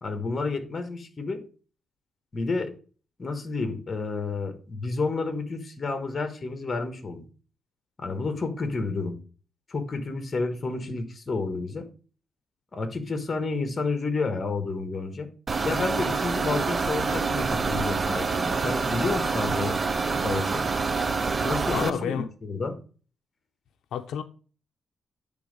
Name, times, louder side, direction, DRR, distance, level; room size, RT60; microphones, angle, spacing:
voice 1, 0.0-1.4 2.3-2.7 3.2-7.2 8.0-9.2 9.7-11.9 12.7-15.3 15.6-19.7 20.2-20.7 21.4-22.8, left 3 dB, 25° left, 1.1 m, -30 dB
sound 1, 15.5-21.9, right 4 dB, 25° right, 0.3 m, -27 dB
voice 2, 21.7-22.3 23.9-24.2, left 9 dB, 80° left, 0.5 m, -29 dB
8.5 x 3.5 x 5.1 m
wide cardioid pair, 165°, 0 cm